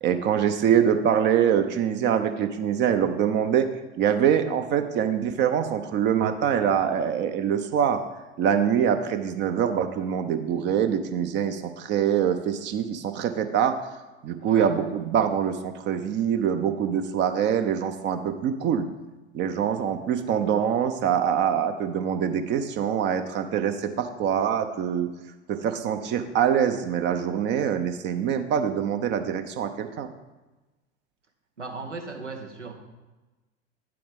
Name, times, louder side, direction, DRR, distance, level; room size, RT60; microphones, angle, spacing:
voice 1, 0.0-3.7 4.0-8.0 8.4-13.8 14.2-18.9 19.3-25.1 25.5-30.1, right 8 dB, 30° right, 8 dB, 0.6 m, -24 dB
voice 2, 14.4-14.7 31.6-32.7, right 4 dB, 85° right, 4 dB, 1.2 m, -36 dB
9.3 x 7.7 x 3.5 m, 1.1 s
figure-of-eight pair, 80°, 35 cm